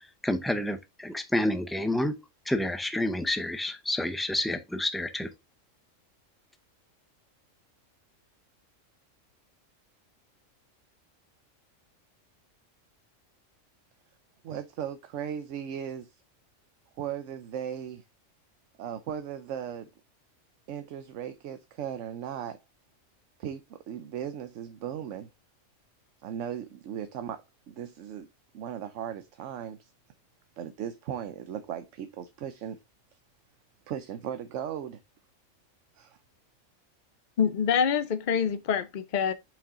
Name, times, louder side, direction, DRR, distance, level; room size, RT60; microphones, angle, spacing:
voice 1, 0.2-2.1 2.5-5.3, left 1 dB, ahead, 0.3 m, -29 dB
voice 2, 14.4-16.1 17.0-18.0 18.8-19.9 20.7-22.6 23.4-25.3 26.2-28.3 28.5-29.9 30.6-32.8 33.9-35.0 35.9-36.2, right 9 dB, 70° right, 1.0 m, -37 dB
voice 3, 37.4-39.3, left 7 dB, 50° left, 0.6 m, -26 dB
5.7 x 5.4 x 3.6 m
omnidirectional pair, 1.3 m